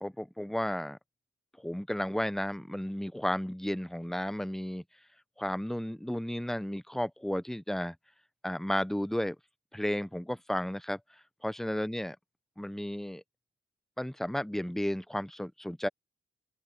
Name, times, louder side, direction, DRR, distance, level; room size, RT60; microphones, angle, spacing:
voice 1, 0.0-1.0 1.6-4.8 5.4-7.9 8.4-9.4 9.7-11.0 11.4-12.2 12.6-13.2 14.0-15.9, equal, ahead, 1.0 m, -33 dB
open air
supercardioid pair, 45°, 29 cm